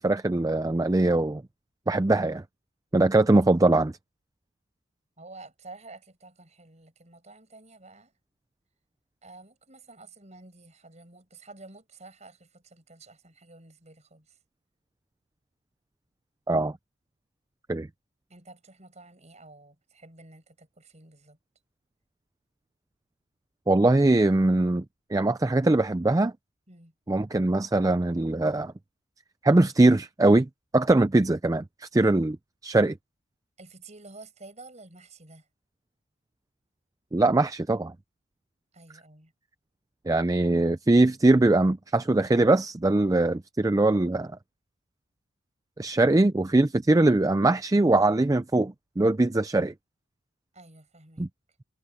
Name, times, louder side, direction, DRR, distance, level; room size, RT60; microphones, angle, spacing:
voice 1, 0.0-1.4 1.9-2.4 2.9-3.9 16.5-16.7 17.7-17.9 23.7-24.8 25.1-26.3 27.1-28.7 29.4-32.4 32.6-33.0 37.1-37.9 40.1-44.3 45.8-49.7 51.2-51.3, right 2 dB, 15° right, 0.4 m, -22 dB
voice 2, 5.2-8.1 9.2-14.3 18.3-21.4 26.7-26.9 33.6-35.5 38.7-39.3 50.5-51.3, right 2 dB, 35° right, 6.6 m, -50 dB
head